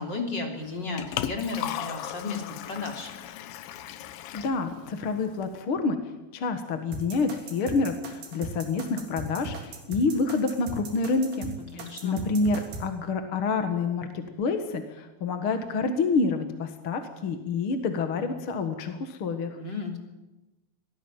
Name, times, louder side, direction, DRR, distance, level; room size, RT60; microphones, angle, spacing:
voice 1, 0.0-3.1 11.7-12.2 19.6-20.0, left 4 dB, 30° left, 3 dB, 3.5 m, -33 dB
Liquid, 0.6-5.6, left 11 dB, 75° left, 2.7 m, -37 dB
voice 2, 4.3-6.0 6.3-19.6, left 4 dB, 45° left, 7 dB, 1.9 m, -28 dB
sound 1, 6.9-12.9, right 2 dB, 80° right, 5.2 m, -38 dB
25.0 x 18.5 x 9.0 m, 1.0 s
omnidirectional pair, 4.4 m